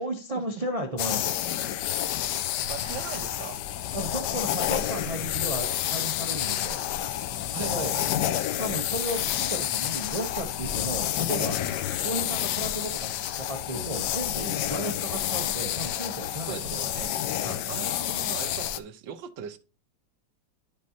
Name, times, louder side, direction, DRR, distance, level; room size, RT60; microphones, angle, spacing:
voice 1, 0.0-1.4 3.9-6.8 7.6-8.0 8.6-11.6 12.0-16.8 17.4-17.6, right 1 dB, 65° right, 0.3 m, -34 dB
Pencil circles, 1.0-18.8, left 11 dB, 75° left, 1.1 m, -29 dB
voice 2, 2.7-3.6 7.5-8.1 16.5-17.2 17.7-19.6, right 9 dB, 80° right, 1.4 m, -39 dB
10.5 x 5.2 x 2.7 m
omnidirectional pair, 2.1 m